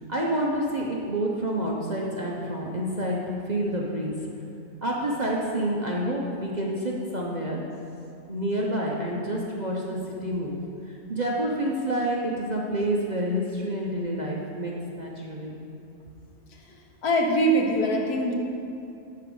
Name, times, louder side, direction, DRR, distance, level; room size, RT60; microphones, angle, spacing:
voice 1, 0.1-4.2 4.8-7.6 8.3-10.6 10.9-15.6, right 1 dB, 40° right, -3 dB, 0.7 m, -28 dB
voice 2, 17.0-18.3, right 1 dB, 75° left, 1 dB, 1.6 m, -22 dB
9.3 x 4.8 x 6.9 m, 2.7 s
omnidirectional pair, 1.6 m